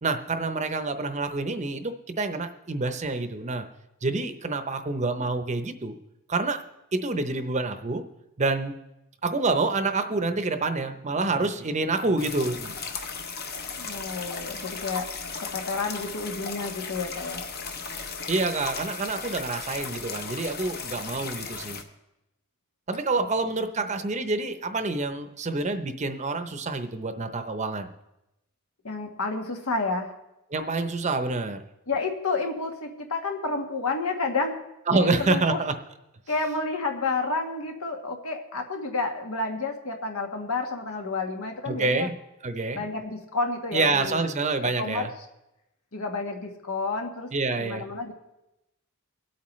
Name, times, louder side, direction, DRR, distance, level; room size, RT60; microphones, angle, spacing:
voice 1, 0.0-3.7 4.0-6.0 6.3-6.6 6.9-8.0 8.4-8.8 9.2-12.8 18.3-21.8 22.9-27.9 30.5-31.6 34.9-35.7 41.7-42.1 42.4-42.8 43.7-45.1 47.3-47.8, right 3 dB, 35° right, 8 dB, 0.7 m, -27 dB
sound 1, 12.2-21.8, left 5 dB, 45° left, 1.0 m, -36 dB
voice 2, 13.8-15.1 15.4-17.4 23.2-23.3 23.8-23.9 28.8-30.1 31.9-34.6 34.9-35.6 36.3-42.1 42.7-44.3 44.6-45.1 45.9-48.1, left 3 dB, 85° left, 3 dB, 1.5 m, -30 dB
23.5 x 8.5 x 3.2 m, 0.93 s
head